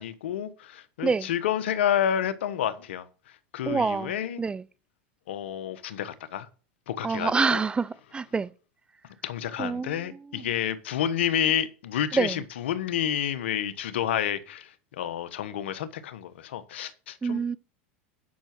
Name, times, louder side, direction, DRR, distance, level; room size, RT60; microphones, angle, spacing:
voice 1, 0.0-3.0 3.5-4.4 5.3-6.5 6.9-7.6 9.2-17.4, left 10 dB, 80° left, 1.2 m, -29 dB
voice 2, 3.7-4.1 4.4-4.6 7.0-8.5 9.6-10.0 10.3-10.5 12.1-12.4 17.2-17.6, right 4 dB, 15° right, 0.5 m, -26 dB
10.0 x 6.0 x 6.1 m
hypercardioid pair, 105°, 6 cm